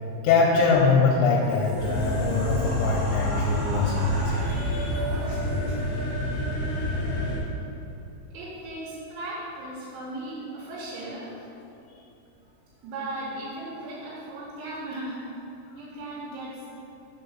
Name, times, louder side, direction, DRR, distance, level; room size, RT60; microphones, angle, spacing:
voice 1, 0.2-5.0, left 4 dB, 85° left, -1 dB, 2.7 m, -23 dB
sound 1, 1.3-5.9, right 1 dB, 55° right, 2.4 m, -38 dB
sound 2, 1.8-7.4, left 1 dB, 60° left, 1.4 m, -28 dB
voice 2, 8.3-11.5 12.8-15.3 15.8-16.7, right 1 dB, 85° right, -7 dB, 3.6 m, -37 dB
6.9 x 3.9 x 5.6 m, 2.7 s
omnidirectional pair, 5.3 m